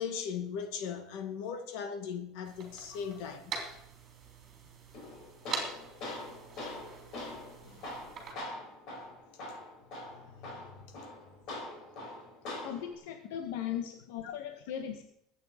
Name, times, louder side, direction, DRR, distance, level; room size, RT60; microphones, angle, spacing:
voice 1, 0.0-3.6 7.6-7.9 10.1-10.9 14.2-14.4, left 7 dB, 60° left, 2.1 m, -39 dB
sound 1, 2.4-8.3, right 5 dB, 25° right, 3.4 m, -44 dB
Tools, 4.9-12.9, left 1 dB, 40° left, 4.4 m, -43 dB
voice 2, 12.6-15.0, left 10 dB, 75° left, 1.5 m, -38 dB
22.0 x 8.9 x 5.2 m
cardioid pair, 175°, 0 cm